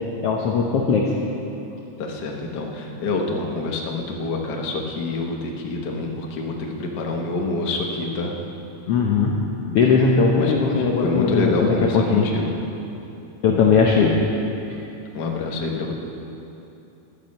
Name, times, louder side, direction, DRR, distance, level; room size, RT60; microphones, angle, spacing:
voice 1, 0.2-1.1 8.9-9.4 9.7-12.3 13.4-14.2 14.7-14.8, left 5 dB, 85° left, -1 dB, 1.3 m, -19 dB
voice 2, 2.0-8.3 10.4-12.5 15.1-15.9, left 3 dB, 70° left, 0 dB, 0.9 m, -27 dB
14.5 x 11.0 x 5.4 m, 2.9 s
omnidirectional pair, 3.9 m